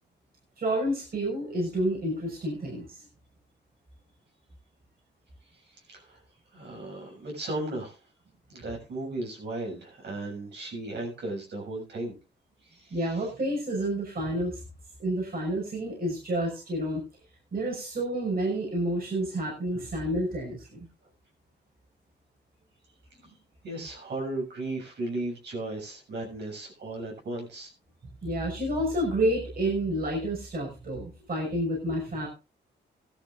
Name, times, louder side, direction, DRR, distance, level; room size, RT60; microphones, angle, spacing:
voice 1, 0.6-3.0 12.9-14.6 15.0-17.0 17.5-20.8 28.2-32.3, right 1 dB, 55° right, -1 dB, 6.0 m, -29 dB
voice 2, 5.7-6.2 6.5-8.0 8.5-12.2 12.6-13.3 23.6-27.7, right 2 dB, 70° right, 0 dB, 7.1 m, -36 dB
17.5 x 13.0 x 2.6 m, 0.29 s
cardioid pair, 90°, 18 cm